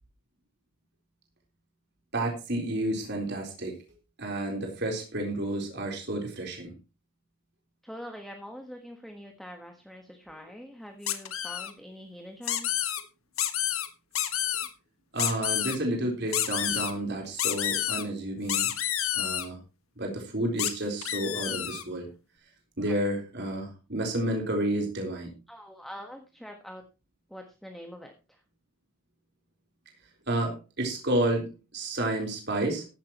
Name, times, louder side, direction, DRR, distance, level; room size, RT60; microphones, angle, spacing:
voice 1, 2.1-3.8 4.2-6.7 15.1-18.7 19.1-19.6 20.0-22.1 22.8-25.3 30.3-31.5 31.7-32.9, right 1 dB, 50° right, 1 dB, 4.0 m, -30 dB
voice 2, 7.8-12.8 25.5-26.8 27.3-28.4, equal, ahead, 3 dB, 1.4 m, -44 dB
sound 1, 11.1-11.7 12.4-13.0 13.4-13.9 14.1-14.7 15.2-15.8 16.3-16.9 17.4-18.0 18.5-19.5 20.6-20.7 21.0-21.8, left 11 dB, 80° left, 1.6 m, -29 dB
15.0 x 11.5 x 3.0 m, 0.30 s
head